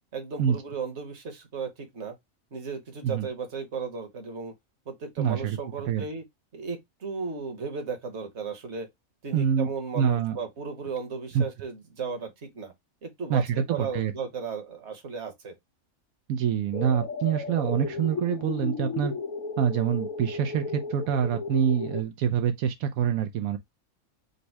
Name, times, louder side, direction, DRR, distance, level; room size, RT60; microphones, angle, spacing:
voice 1, 0.1-2.1 2.5-4.5 4.9-6.2 6.5-8.9 9.2-12.7 13.0-15.5, right 5 dB, 55° right, 1.5 m, -35 dB
voice 2, 5.2-5.6 5.8-6.0 9.3-9.7 9.9-10.4 11.3-11.4 13.3-14.1 16.3-19.1 19.6-23.6, right 8 dB, 85° right, 1.0 m, -26 dB
sound 1, 16.7-22.0, left 5 dB, 85° left, 1.3 m, -34 dB
5.3 x 2.1 x 4.5 m
omnidirectional pair, 1.4 m